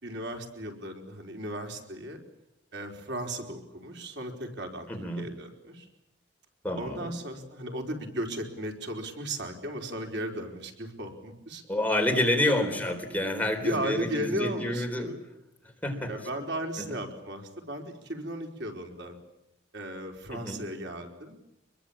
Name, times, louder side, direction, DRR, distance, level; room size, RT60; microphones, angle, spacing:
voice 1, 0.0-2.2 2.7-4.9 5.2-5.9 6.8-11.6 12.4-12.7 13.6-15.2 16.1-19.2 19.7-21.4, right 1 dB, 70° right, 3 dB, 4.7 m, -36 dB
voice 2, 4.9-5.3 6.6-7.2 11.7-15.1 15.8-16.1 20.3-20.6, left 1 dB, 10° left, 3 dB, 3.9 m, -28 dB
26.5 x 22.5 x 8.9 m, 0.89 s
head